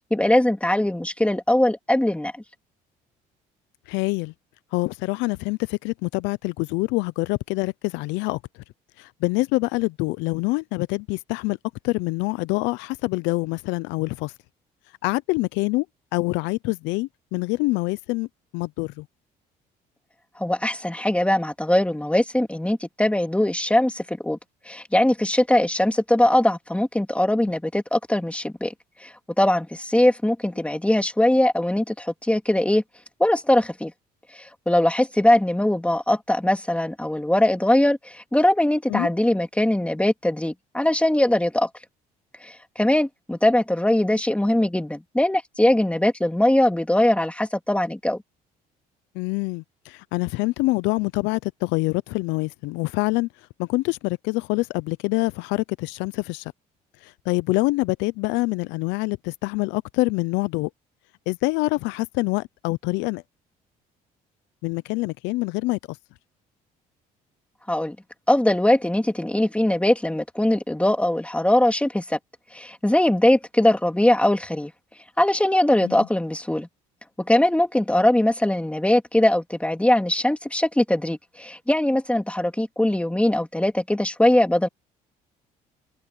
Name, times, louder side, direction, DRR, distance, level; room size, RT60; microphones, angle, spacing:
voice 1, 0.1-2.3 20.4-24.4 24.6-28.7 29.0-32.8 33.2-33.9 34.3-41.7 42.4-48.2 67.7-67.9 68.3-72.2 72.5-74.7 75.2-76.7 77.2-84.7, left 1 dB, 5° left, 3.4 m, -21 dB
voice 2, 3.9-4.3 4.7-8.4 9.0-11.6 11.8-14.3 15.0-15.9 16.1-18.3 18.5-19.1 38.9-39.1 49.1-53.3 53.6-56.5 57.0-60.7 61.3-63.2 64.6-66.0 75.8-76.1, left 23 dB, 75° left, 0.7 m, -25 dB
hypercardioid pair, 65°, 19 cm